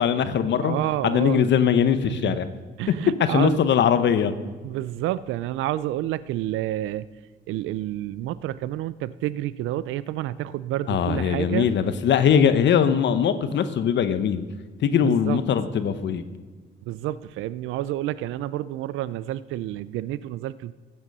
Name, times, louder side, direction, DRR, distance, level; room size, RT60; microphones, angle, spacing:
voice 1, 0.0-0.8 1.0-2.5 3.2-4.3 10.9-14.4 14.8-16.2, left 8 dB, 65° left, 11 dB, 0.9 m, -21 dB
voice 2, 0.6-1.5 2.1-2.4 2.8-3.6 4.6-7.1 7.5-11.7 15.0-15.4 16.9-20.7, right 14 dB, 85° right, 17 dB, 0.4 m, -29 dB
14.5 x 8.9 x 5.4 m, 1.4 s
cardioid pair, 90°, 20 cm